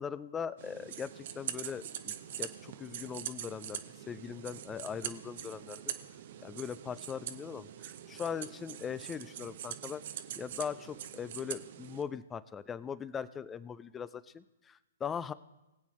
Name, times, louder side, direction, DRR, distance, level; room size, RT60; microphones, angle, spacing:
voice 1, 0.0-5.9 6.4-10.0 10.4-15.3, left 7 dB, 15° left, 17 dB, 0.4 m, -40 dB
sound 1, 0.6-12.0, right 10 dB, 50° right, 0.7 m, -43 dB
21.0 x 8.3 x 3.1 m, 0.98 s
figure-of-eight pair, 125°, 0 cm